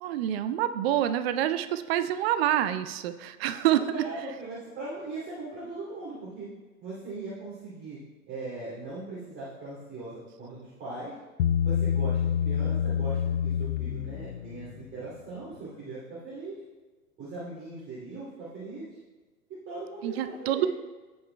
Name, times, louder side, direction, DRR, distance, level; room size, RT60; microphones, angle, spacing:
voice 1, 0.0-3.8 20.0-20.7, right 12 dB, 45° right, 10 dB, 0.5 m, -27 dB
voice 2, 3.7-6.5 6.8-8.0 8.3-11.1 11.6-16.6 17.2-19.0 19.5-20.7, right 2 dB, 25° right, -8 dB, 2.7 m, -39 dB
Bass guitar, 11.4-14.8, left 9 dB, 60° left, 0.5 m, -27 dB
15.0 x 5.6 x 2.2 m, 1.3 s
figure-of-eight pair, 105°, 44 cm